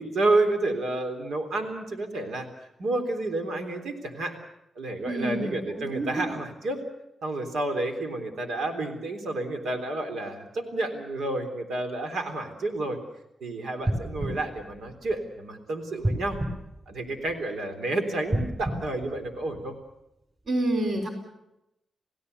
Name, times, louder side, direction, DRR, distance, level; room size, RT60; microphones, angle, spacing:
voice 1, 0.0-2.5 2.8-4.4 4.8-6.8 7.2-13.0 13.4-16.4 16.9-19.7, right 2 dB, 85° right, 5 dB, 3.5 m, -30 dB
voice 2, 5.0-6.3 20.5-21.1, right 1 dB, 50° right, 3 dB, 4.1 m, -28 dB
sound 1, 13.8-15.5 16.0-17.6 18.2-19.9 20.5-20.6, right 1 dB, 25° right, 4.7 m, -32 dB
29.5 x 17.0 x 6.9 m, 0.88 s
wide cardioid pair, 175°, 0 cm